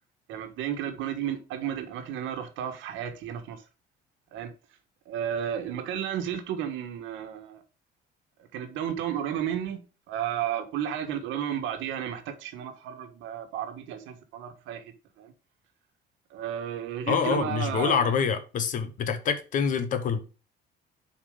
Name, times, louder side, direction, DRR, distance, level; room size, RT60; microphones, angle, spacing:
voice 1, 0.3-3.6 4.3-4.5 5.0-7.6 8.5-9.8 10.1-15.3 16.3-18.2, right 9 dB, 80° right, 1.6 m, -33 dB
voice 2, 17.1-20.2, left 6 dB, 45° left, 1.1 m, -26 dB
7.3 x 4.6 x 5.1 m
cardioid pair, 175°, 19 cm